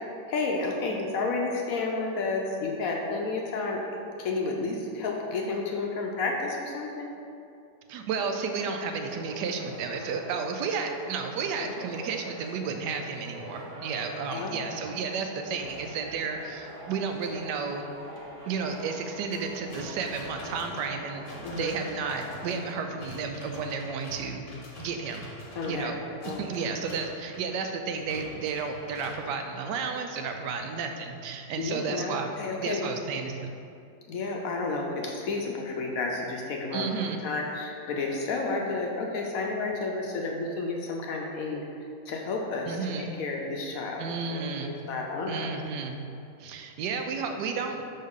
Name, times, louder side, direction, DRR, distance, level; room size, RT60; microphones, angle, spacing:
voice 1, 0.3-3.8 4.2-7.1 10.7-10.8 11.6-11.7 14.3-14.6 21.4-21.7 25.6-25.9 26.2-26.4 31.6-32.9 34.1-41.6 42.1-45.5, left 3 dB, 65° left, 0 dB, 0.9 m, -31 dB
voice 2, 7.9-17.9 18.5-21.2 21.6-24.5 24.8-25.3 25.7-26.0 26.2-32.3 32.6-33.5 36.7-37.2 42.7-43.1 44.0-44.7 45.3-46.0 46.4-47.8, right 5 dB, 90° right, 5 dB, 1.2 m, -32 dB
sound 1, 8.1-22.6, right 1 dB, 35° right, 1.2 m, -45 dB
sound 2, 15.4-29.2, left 2 dB, 40° left, 0.9 m, -47 dB
5.4 x 5.4 x 3.7 m, 2.6 s
omnidirectional pair, 1.8 m